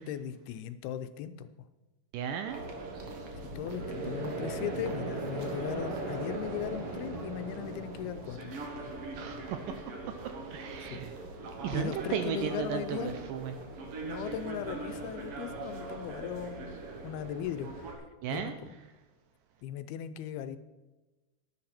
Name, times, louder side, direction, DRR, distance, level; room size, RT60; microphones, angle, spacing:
voice 1, 0.0-1.5 3.6-8.5 10.8-11.0 11.7-13.1 14.0-16.7 17.0-18.7 19.6-20.6, left 10 dB, 90° left, 11 dB, 2.6 m, -38 dB
voice 2, 2.1-2.6 9.2-9.7 10.5-11.1 11.6-13.5 13.9-14.1 18.2-18.6, right 8 dB, 80° right, 7 dB, 2.0 m, -35 dB
sound 1, 2.5-17.9, right 3 dB, 60° right, 1.6 m, -39 dB
11.5 x 10.0 x 4.3 m, 1.2 s
omnidirectional pair, 4.4 m